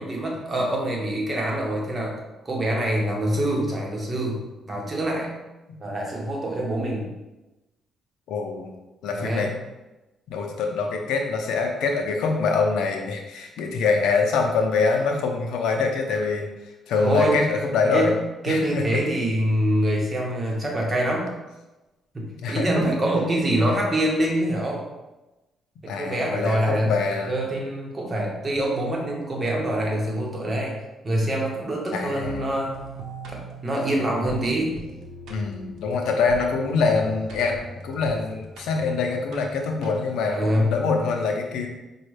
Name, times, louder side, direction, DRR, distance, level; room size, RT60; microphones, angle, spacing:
voice 1, 0.0-2.1 2.4-4.4 4.7-5.3 5.8-7.1 9.1-9.5 17.0-17.4 17.9-21.3 22.1-24.8 25.8-26.9 27.2-30.8 31.0-32.8 33.3-34.8 40.3-40.7, right 1 dB, 30° right, -2 dB, 1.1 m, -25 dB
voice 2, 8.3-8.7 9.0-9.5 10.3-16.5 16.9-18.1 18.5-19.0 22.4-22.8 25.9-27.3 31.9-32.5 35.3-37.6 37.8-41.7, left 4 dB, 85° left, 3 dB, 0.5 m, -24 dB
sound 1, 32.2-40.3, right 2 dB, 75° right, 0.7 m, -41 dB
5.1 x 2.3 x 3.2 m, 1.1 s
cardioid pair, 90°, 0 cm